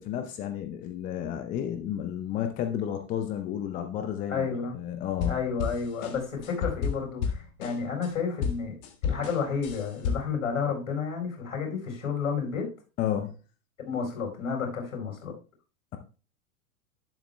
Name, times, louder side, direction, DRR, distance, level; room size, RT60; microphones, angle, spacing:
voice 1, 0.0-4.5 4.7-5.4 13.0-13.3, left 10 dB, 20° left, 7 dB, 0.6 m, -32 dB
voice 2, 4.3-4.8 5.3-8.8 9.0-12.7 13.8-15.3, left 6 dB, 65° left, 1 dB, 4.7 m, -31 dB
sound 1, 5.1-8.1 8.4-10.4, left 7 dB, 40° left, 1.7 m, -32 dB
12.0 x 10.5 x 2.2 m, 0.35 s
figure-of-eight pair, 100°, 44 cm